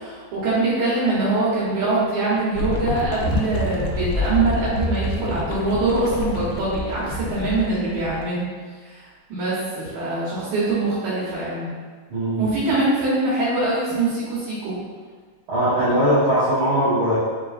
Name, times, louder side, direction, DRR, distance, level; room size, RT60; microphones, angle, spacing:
voice 1, 0.0-8.5 8.8-9.0 9.3-11.7 12.4-14.8, right 2 dB, 70° right, -9 dB, 2.0 m, -23 dB
sound 1, 2.6-8.3, left 2 dB, 85° left, 2.3 m, -28 dB
voice 2, 12.1-12.4 15.5-17.2, equal, 55° right, -14 dB, 1.4 m, -20 dB
5.9 x 3.1 x 2.4 m, 1.5 s
omnidirectional pair, 4.8 m